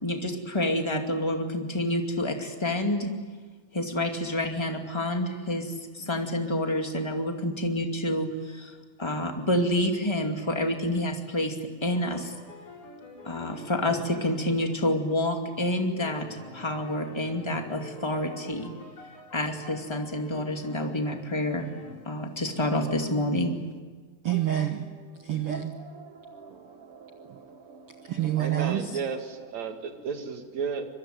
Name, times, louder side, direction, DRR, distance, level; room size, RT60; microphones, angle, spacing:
voice 1, 0.0-3.1 3.7-12.3 13.2-18.7 19.3-21.7 22.0-23.6, left 1 dB, 10° left, 3 dB, 1.5 m, -28 dB
sound 1, 11.9-15.6 16.0-21.3 21.6-21.9, left 2 dB, 85° left, 6.8 m, -46 dB
voice 2, 24.2-29.0, right 11 dB, 65° right, 5 dB, 1.4 m, -31 dB
voice 3, 28.4-30.9, right 5 dB, 50° right, 5 dB, 3.2 m, -33 dB
25.5 x 22.5 x 9.3 m, 1.4 s
omnidirectional pair, 4.3 m